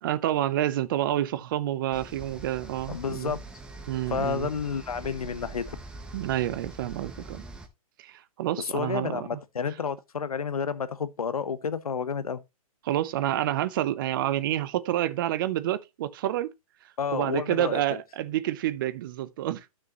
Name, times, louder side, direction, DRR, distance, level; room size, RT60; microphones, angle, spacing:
voice 1, 0.0-3.3 3.9-4.5 6.1-7.4 8.0-9.4 12.8-16.5 17.1-19.6, right 13 dB, 35° right, 0.6 m, -28 dB
sound 1, 1.9-7.7, right 3 dB, 5° right, 0.7 m, -43 dB
voice 2, 2.9-3.4 4.1-5.8 8.6-12.4 17.0-18.0, left 6 dB, 90° left, 0.9 m, -30 dB
12.0 x 6.3 x 2.9 m
hypercardioid pair, 145°, 18 cm